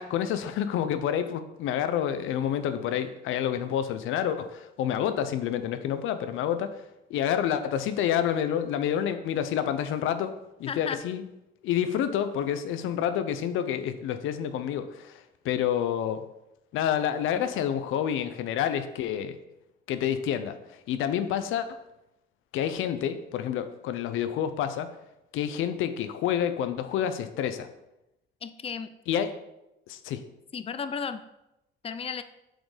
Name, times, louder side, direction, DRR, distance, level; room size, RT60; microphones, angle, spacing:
voice 1, 0.0-6.8 7.1-10.3 10.6-11.2 11.6-16.2 16.7-19.4 19.9-20.6 20.9-21.7 22.5-24.9 25.3-27.7 29.1-29.3 29.9-30.2, left 9 dB, 90° left, 10 dB, 0.7 m, -28 dB
voice 2, 10.7-11.0 28.4-28.9 30.5-31.2 31.8-32.2, left 6 dB, 30° left, 11 dB, 0.5 m, -34 dB
7.5 x 5.2 x 5.0 m, 0.90 s
cardioid pair, 90°, 20 cm